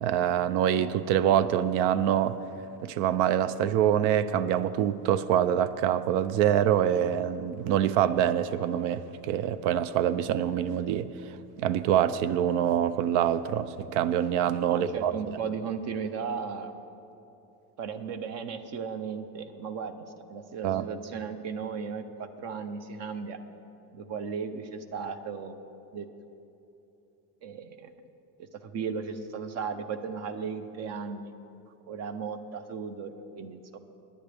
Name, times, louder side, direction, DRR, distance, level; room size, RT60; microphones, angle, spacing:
voice 1, 0.0-2.4 2.8-11.1 11.6-15.1 20.6-20.9, right 10 dB, 80° right, 15 dB, 0.6 m, -25 dB
voice 2, 14.7-16.7 17.8-23.4 23.9-25.6 25.9-26.1 27.4-27.9 28.4-31.3 31.9-33.8, right 6 dB, 40° right, 10 dB, 0.7 m, -36 dB
19.5 x 10.0 x 3.4 m, 2.9 s
cardioid pair, 175°, 41 cm